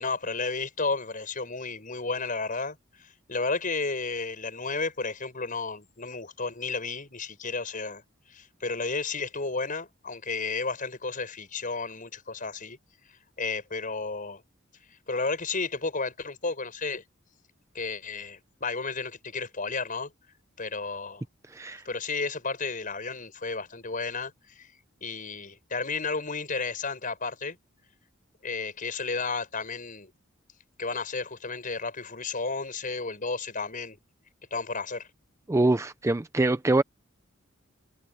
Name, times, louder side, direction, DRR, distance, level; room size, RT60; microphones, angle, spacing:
voice 1, 0.0-8.0 8.3-12.8 13.4-14.4 15.1-17.0 17.7-20.1 20.6-21.3 21.8-24.7 25.0-27.6 28.4-30.1 30.8-34.0 34.5-35.1, left 4 dB, 40° left, 6.5 m, -32 dB
voice 2, 35.5-36.8, right 2 dB, 15° right, 0.4 m, -24 dB
head